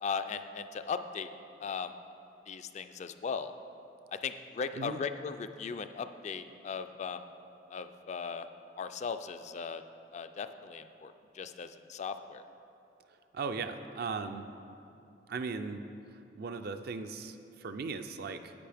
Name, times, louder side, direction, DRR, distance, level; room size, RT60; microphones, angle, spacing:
voice 1, 0.0-1.3 1.6-1.9 2.5-3.5 4.1-7.2 7.7-8.5 8.8-9.8 10.1-12.4, left 5 dB, 40° left, 9 dB, 0.3 m, -38 dB
voice 2, 13.3-14.5 15.3-15.8 16.3-18.5, right 4 dB, 60° right, 8 dB, 0.4 m, -37 dB
10.0 x 8.5 x 3.4 m, 2.7 s
head